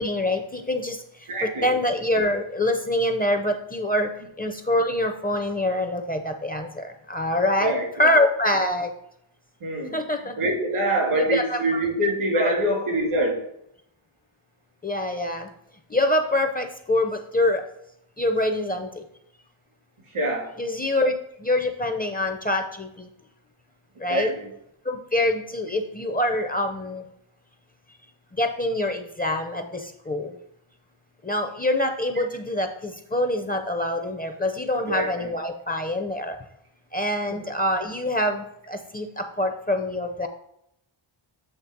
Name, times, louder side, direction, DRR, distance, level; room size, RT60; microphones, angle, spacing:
voice 1, 0.0-4.1 4.4-8.9 9.9-10.4 11.1-11.8 12.3-12.6 14.8-15.5 15.9-17.6 18.2-19.0 20.6-21.1 21.4-23.1 24.0-24.3 24.9-27.0 28.4-30.4 31.2-36.4 36.9-40.3, left 1 dB, 20° left, 5 dB, 0.5 m, -25 dB
voice 2, 1.3-1.7 7.6-7.9 9.6-10.0 10.4-13.4 20.1-20.5 24.1-24.5 34.9-35.3 37.3-37.4, right 1 dB, 90° right, -1 dB, 2.7 m, -25 dB
7.9 x 3.2 x 5.8 m, 0.76 s
wide cardioid pair, 145°, 50 cm